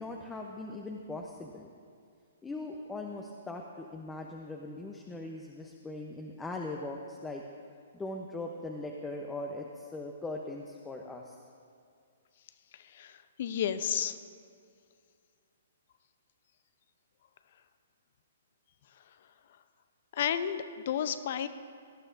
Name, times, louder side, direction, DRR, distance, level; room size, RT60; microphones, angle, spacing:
voice 1, 0.0-1.7 2.4-7.4 7.9-11.3, left 2 dB, 10° left, 1 dB, 0.8 m, -40 dB
voice 2, 12.8-14.2 20.1-21.5, left 9 dB, 55° left, 12 dB, 0.7 m, -32 dB
18.0 x 12.0 x 2.7 m, 2.3 s
figure-of-eight pair, 125°, 0 cm